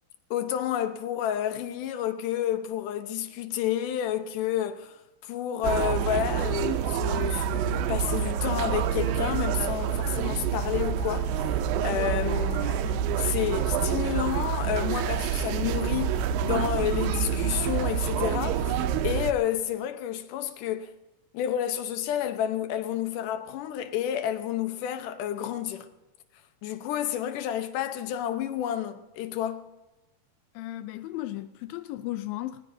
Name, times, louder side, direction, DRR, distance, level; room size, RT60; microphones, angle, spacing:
voice 1, 0.3-18.8 19.0-20.9 21.3-25.9 26.6-29.7, left 10 dB, 70° left, 2.1 m, -30 dB
sound 1, 5.6-19.3, right 8 dB, 80° right, 2.1 m, -27 dB
voice 2, 30.5-32.6, left 15 dB, 85° left, 2.0 m, -35 dB
19.5 x 19.0 x 2.7 m
omnidirectional pair, 4.8 m